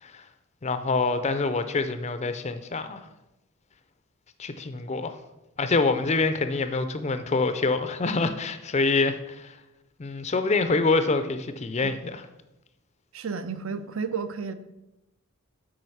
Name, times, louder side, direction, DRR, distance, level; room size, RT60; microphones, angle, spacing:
voice 1, 0.6-3.0 4.4-5.2 5.6-9.6 10.0-12.2, left 3 dB, 30° left, 10 dB, 0.4 m, -26 dB
voice 2, 13.1-14.5, right 5 dB, 65° right, 11 dB, 0.5 m, -32 dB
7.8 x 5.0 x 5.6 m, 0.95 s
head